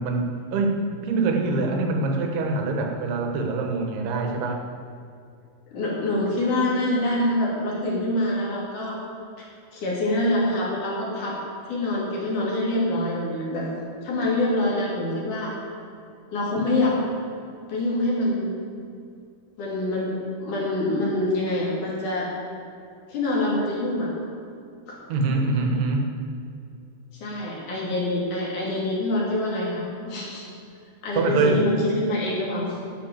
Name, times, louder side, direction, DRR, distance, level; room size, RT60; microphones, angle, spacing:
voice 1, 0.0-4.6 25.1-26.1 31.2-31.6, right 3 dB, 85° right, 2 dB, 3.3 m, -24 dB
voice 2, 5.7-9.0 9.4-9.5 9.7-11.4 11.7-13.7 14.0-15.5 16.3-17.0 17.7-18.6 19.6-20.1 20.4-22.3 23.1-24.1 24.9-25.0 27.2-30.4 31.0-32.8, left 1 dB, 55° left, -4 dB, 3.8 m, -25 dB
11.0 x 8.3 x 7.4 m, 2.5 s
omnidirectional pair, 4.5 m